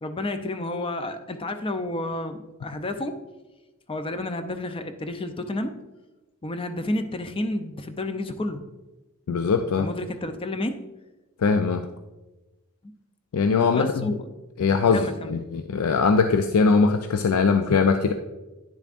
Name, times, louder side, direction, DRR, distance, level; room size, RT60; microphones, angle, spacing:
voice 1, 0.0-3.2 3.9-5.7 6.4-8.7 9.8-10.8 13.7-14.3 14.9-15.4, left 1 dB, 25° left, 8 dB, 0.5 m, -30 dB
voice 2, 9.3-9.9 11.4-11.8 13.3-14.1 14.6-18.1, left 4 dB, 80° left, 6 dB, 0.4 m, -21 dB
10.0 x 7.0 x 2.5 m, 1.1 s
head